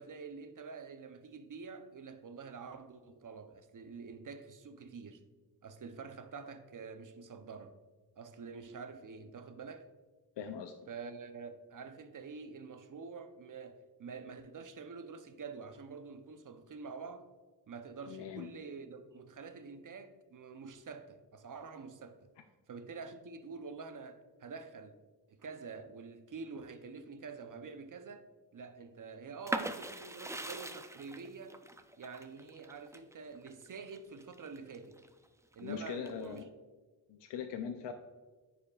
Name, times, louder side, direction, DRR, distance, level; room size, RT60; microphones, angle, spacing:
voice 1, 0.0-5.2 5.6-7.8 8.2-9.9 10.9-17.3 17.7-22.3 22.7-25.0 25.3-28.3 28.5-31.6 32.0-35.0 35.5-36.6, right 5 dB, 50° right, 0.6 m, -47 dB
voice 2, 10.4-10.7 18.1-18.5 35.6-36.5 37.1-37.9, left 7 dB, 85° left, 0.5 m, -41 dB
sound 1, 29.5-35.1 35.5-36.4, right 1 dB, 10° right, 0.3 m, -41 dB
9.6 x 5.1 x 2.3 m
wide cardioid pair, 80°, 42 cm